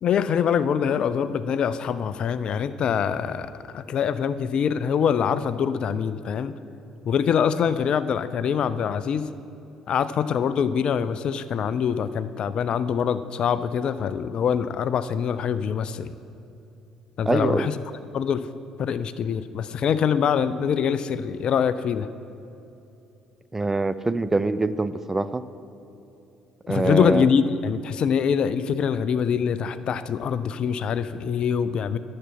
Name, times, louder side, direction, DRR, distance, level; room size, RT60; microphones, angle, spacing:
voice 1, 0.0-6.6 7.1-9.3 9.9-16.1 17.2-17.8 18.1-18.5 18.8-22.1 26.7-32.0, left 7 dB, 45° left, 14 dB, 0.4 m, -24 dB
voice 2, 17.3-17.7 23.5-25.4 26.7-27.2, right 2 dB, 15° right, 13 dB, 0.4 m, -24 dB
11.0 x 7.4 x 5.8 m, 2.8 s
figure-of-eight pair, 50°, 2 cm